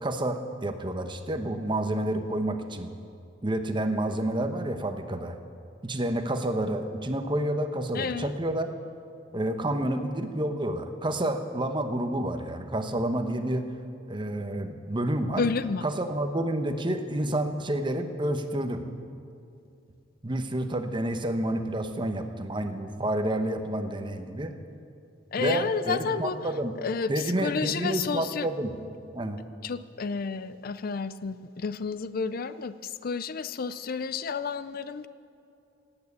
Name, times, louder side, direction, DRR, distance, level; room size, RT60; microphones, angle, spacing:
voice 1, 0.0-2.9 3.4-5.3 5.8-8.7 9.3-13.7 14.1-15.4 15.8-18.8 20.2-24.6 25.4-26.7 27.1-28.7 29.1-29.4, right 1 dB, 25° right, 7 dB, 1.0 m, -29 dB
voice 2, 7.9-8.4 15.3-15.8 25.3-26.5 26.8-28.5 29.6-35.1, left 5 dB, 50° left, 14 dB, 0.5 m, -31 dB
18.0 x 8.9 x 8.3 m, 2.6 s
head